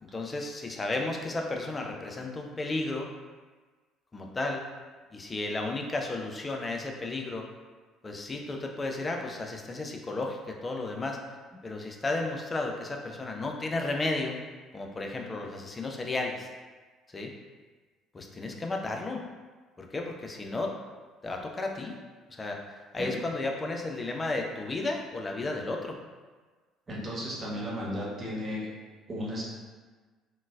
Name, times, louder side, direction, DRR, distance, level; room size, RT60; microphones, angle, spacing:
voice 1, 0.0-3.1 4.1-4.6 5.1-7.5 8.0-11.2 11.6-14.4 14.7-16.5 17.1-17.3 18.1-19.2 19.8-20.7 21.2-21.9 22.3-22.6 22.9-26.0, left 2 dB, 25° left, 1 dB, 0.5 m, -33 dB
voice 2, 26.9-28.7 29.1-29.4, equal, 30° right, -6 dB, 1.1 m, -34 dB
3.7 x 2.4 x 2.3 m, 1.4 s
figure-of-eight pair, 55°, 0 cm